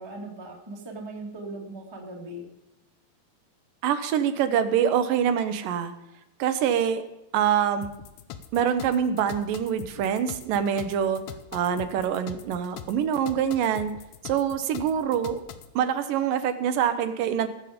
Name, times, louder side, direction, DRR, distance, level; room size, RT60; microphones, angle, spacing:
voice 1, 0.0-2.5, right 2 dB, 10° right, 0 dB, 1.1 m, -39 dB
voice 2, 3.8-5.9 6.4-7.0 7.3-7.9 8.5-11.2 11.5-13.9 14.2-15.4 15.8-17.5, right 8 dB, 80° right, 9 dB, 2.4 m, -25 dB
sound 1, 7.8-15.7, left 9 dB, 75° left, 1.8 m, -42 dB
19.0 x 7.3 x 5.0 m, 0.91 s
omnidirectional pair, 4.0 m